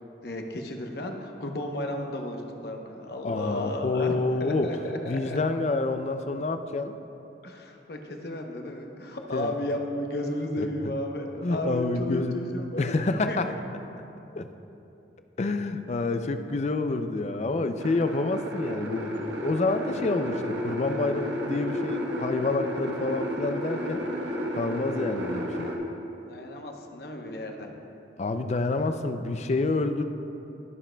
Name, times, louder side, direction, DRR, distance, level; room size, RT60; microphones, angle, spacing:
voice 1, 0.2-5.4 7.4-12.8 13.3-13.4 26.3-27.7, left 1 dB, 55° left, 3 dB, 0.8 m, -33 dB
voice 2, 3.2-4.8 5.1-6.9 9.3-9.5 10.6-10.7 11.4-12.4 12.8-13.5 14.4-14.5 15.4-25.7 28.2-30.0, left 3 dB, 35° left, 8 dB, 0.4 m, -28 dB
sound 1, 17.8-25.8, equal, 75° right, 1.1 m, -32 dB
19.5 x 7.3 x 2.2 m, 2.9 s
head